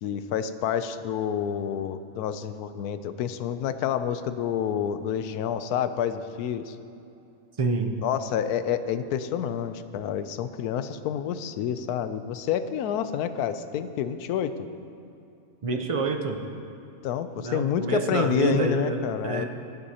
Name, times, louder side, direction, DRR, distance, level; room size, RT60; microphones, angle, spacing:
voice 1, 0.0-6.8 8.0-14.7 17.0-19.5, left 9 dB, 85° left, 11 dB, 1.1 m, -28 dB
voice 2, 7.6-7.9 15.6-16.6 17.4-19.4, right 4 dB, 45° right, 4 dB, 0.4 m, -27 dB
23.0 x 8.0 x 2.8 m, 2.7 s
omnidirectional pair, 1.6 m